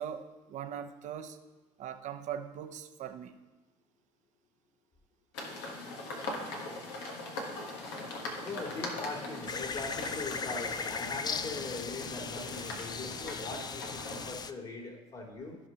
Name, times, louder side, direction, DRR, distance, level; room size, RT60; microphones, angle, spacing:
voice 1, 0.0-1.4 1.8-3.4, right 9 dB, 60° right, 8 dB, 0.8 m, -40 dB
sound 1, 5.3-14.3, left 2 dB, 85° left, 1.4 m, -41 dB
voice 2, 8.4-15.6, left 3 dB, 50° left, -6 dB, 2.6 m, -41 dB
sound 2, 9.5-14.5, left 5 dB, 30° left, 0.5 m, -38 dB
15.0 x 5.4 x 2.9 m, 1.2 s
supercardioid pair, 75°, 14 cm